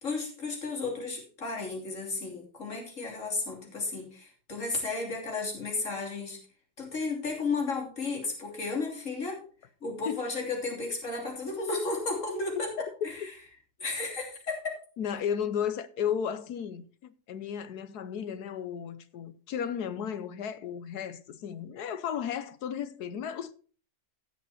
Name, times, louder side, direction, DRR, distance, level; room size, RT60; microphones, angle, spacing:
voice 1, 0.0-6.4 6.8-9.4 9.8-12.7 13.0-13.3 13.8-14.8, left 3 dB, 45° left, 3.5 m, -33 dB
voice 2, 15.0-23.5, left 8 dB, 70° left, 1.4 m, -34 dB
16.0 x 5.9 x 4.2 m
omnidirectional pair, 1.8 m